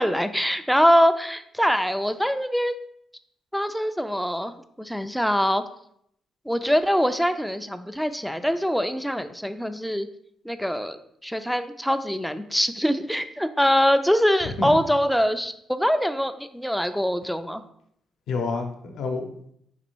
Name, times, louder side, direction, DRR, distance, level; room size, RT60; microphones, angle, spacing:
voice 1, 0.0-2.8 3.5-5.6 6.5-10.1 10.5-11.0 11.2-17.6, equal, ahead, 9 dB, 0.3 m, -23 dB
voice 2, 14.4-14.7 18.3-19.5, left 4 dB, 75° left, 4 dB, 0.7 m, -29 dB
4.1 x 2.6 x 4.4 m, 0.72 s
cardioid pair, 90°, 0 cm